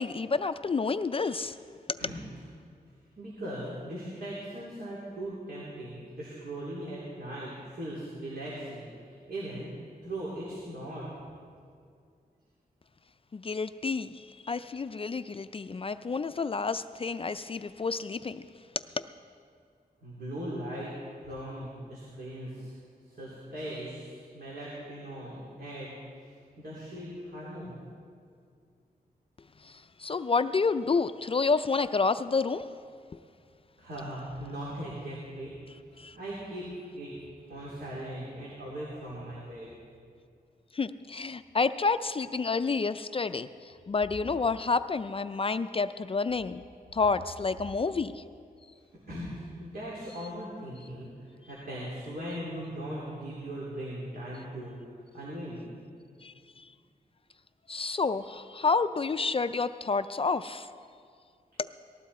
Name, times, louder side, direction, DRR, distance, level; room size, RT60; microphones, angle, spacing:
voice 1, 0.0-1.6 1.9-2.0 13.3-18.4 19.0-19.1 29.6-32.7 36.0-36.2 40.7-46.6 46.9-48.2 56.2-56.7 57.7-60.7 61.6-61.8, left 4 dB, 35° left, 12 dB, 0.4 m, -29 dB
voice 2, 3.2-9.7 10.0-11.0 20.0-20.9 21.2-22.7 23.1-25.9 26.6-27.8 33.8-35.5 36.1-36.6 36.9-37.1 37.5-39.7 49.1-51.1 51.5-54.8 55.1-55.6, right 1 dB, 80° right, -7 dB, 3.4 m, -39 dB
19.0 x 14.5 x 4.2 m, 2.3 s
wide cardioid pair, 120°, 16 cm